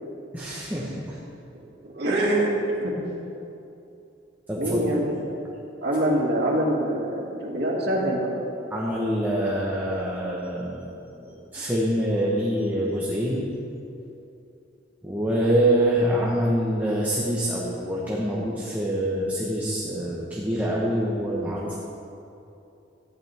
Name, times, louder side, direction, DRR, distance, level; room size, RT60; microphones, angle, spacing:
voice 1, 0.3-1.2 4.5-4.9 8.7-10.8 11.1-13.5 15.0-21.7, right 1 dB, 10° right, -6 dB, 1.3 m, -25 dB
voice 2, 1.5-2.5 2.8-2.9 4.6-5.1 5.8-8.3, right 1 dB, 60° right, -4 dB, 2.5 m, -25 dB
14.5 x 11.5 x 3.7 m, 2.8 s
head